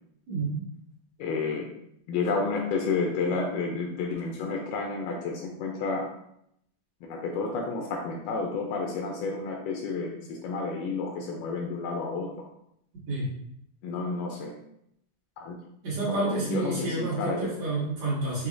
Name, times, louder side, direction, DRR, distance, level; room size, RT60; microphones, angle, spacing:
voice 1, 0.3-0.6 13.1-13.3 15.8-18.5, right 2 dB, 55° right, -9 dB, 2.4 m, -29 dB
voice 2, 1.2-1.7 2.1-6.1 7.0-12.3 13.8-14.5 15.4-15.6 16.0-17.5, left 4 dB, 90° left, 1 dB, 1.8 m, -31 dB
6.5 x 2.6 x 2.4 m, 0.76 s
omnidirectional pair, 4.3 m